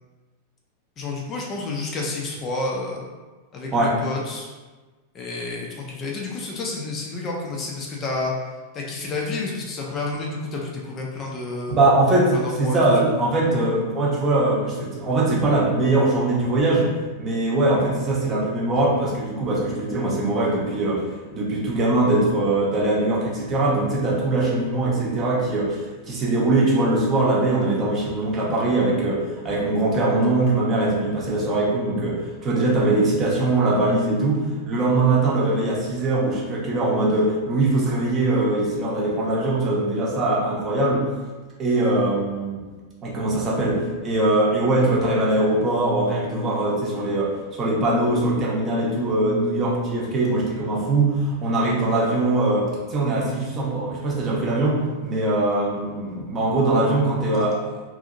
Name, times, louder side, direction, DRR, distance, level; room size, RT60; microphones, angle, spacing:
voice 1, 1.0-3.0 3.5-4.5 5.1-8.3 8.7-11.8 12.3-12.8 57.3-57.4, left 3 dB, 30° left, -2 dB, 0.4 m, -30 dB
voice 2, 11.7-16.9 17.2-21.0 21.3-41.0 41.6-42.6 43.0-47.3 47.6-57.6, right 2 dB, 25° right, -5 dB, 0.7 m, -21 dB
2.7 x 2.6 x 2.5 m, 1.3 s
figure-of-eight pair, 90°, 0 cm